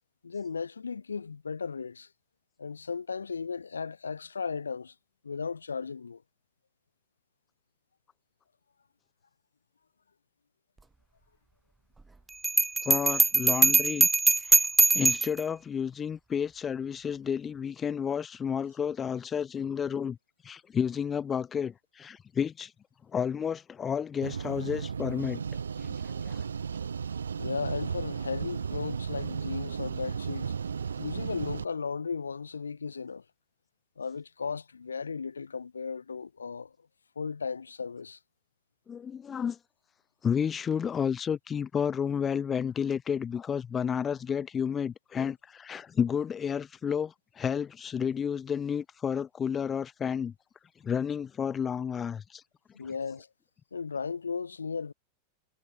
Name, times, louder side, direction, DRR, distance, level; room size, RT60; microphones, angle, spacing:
voice 1, 0.2-2.1 2.6-4.9 5.2-6.2 27.4-30.5 31.0-33.2 34.0-36.7 37.2-38.2 52.7-53.3 53.7-54.9, left 5 dB, 75° left, 5.6 m, -35 dB
Bell, 12.4-15.4, right 3 dB, 10° right, 0.5 m, -22 dB
voice 2, 12.8-14.1 14.4-20.2 20.4-22.7 23.1-25.4 25.8-26.4 38.9-39.6 40.2-50.3 50.8-52.4, left 7 dB, 20° left, 1.3 m, -31 dB
sound 1, 24.2-31.7, right 6 dB, 70° right, 3.6 m, -34 dB
figure-of-eight pair, 90°, 0 cm